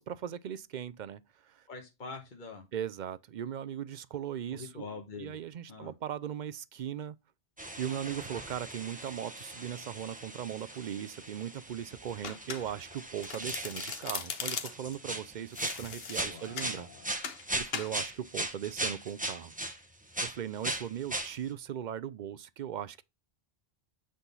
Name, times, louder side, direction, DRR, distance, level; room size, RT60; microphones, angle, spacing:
voice 1, 0.0-1.6 2.7-4.9 5.2-7.2 7.8-16.9 17.5-19.5 20.2-23.0, right 9 dB, 55° right, 0.5 m, -38 dB
voice 2, 1.7-2.7 4.5-5.4 5.7-5.9 16.2-17.2, left 4 dB, 50° left, 1.3 m, -45 dB
sound 1, 7.6-19.8 20.1-21.3, right 1 dB, 10° right, 0.8 m, -39 dB
Domestic sounds home sounds, 12.2-12.9 13.2-14.9 15.5-16.8 17.2-17.4 17.7-17.9, left 6 dB, 70° left, 1.1 m, -39 dB
8.2 x 3.8 x 3.9 m
omnidirectional pair, 1.1 m